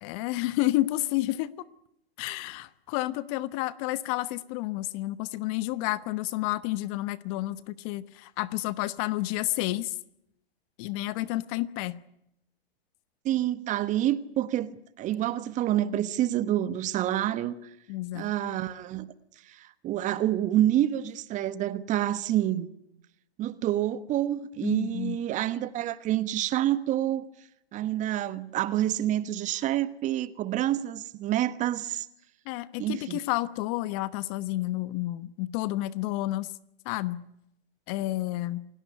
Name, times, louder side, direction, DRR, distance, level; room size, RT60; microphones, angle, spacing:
voice 1, 0.0-1.6 2.2-10.0 10.8-12.0 17.9-18.3 24.6-25.2 32.5-36.5 36.8-37.2 37.9-38.7, left 17 dB, 35° left, 1.2 m, -30 dB
voice 2, 13.2-14.7 15.0-17.7 18.1-19.1 19.5-22.7 23.4-27.3 27.7-32.1 32.8-33.2, right 12 dB, 25° right, 1.3 m, -28 dB
28.0 x 18.0 x 9.6 m
hypercardioid pair, 120°, 31 cm